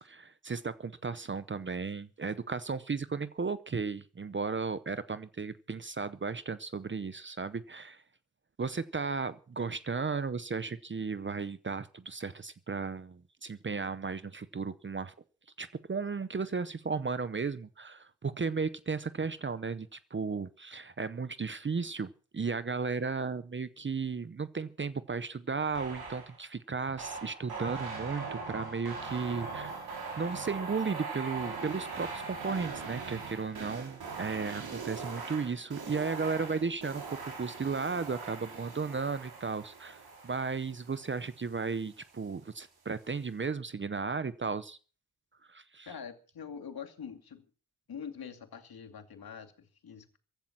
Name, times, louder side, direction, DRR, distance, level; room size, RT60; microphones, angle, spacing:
voice 1, 0.0-8.0 8.6-15.1 15.6-29.7 30.2-44.8 45.5-45.9, right 5 dB, 30° right, 14 dB, 0.7 m, -35 dB
sound 1, 25.7-26.4 27.0-41.6, right 4 dB, 65° right, 5.9 m, -41 dB
voice 2, 45.9-47.5 47.9-50.2, left 7 dB, 60° left, 7 dB, 2.4 m, -44 dB
15.5 x 11.5 x 6.0 m, 0.38 s
wide cardioid pair, 175°, 41 cm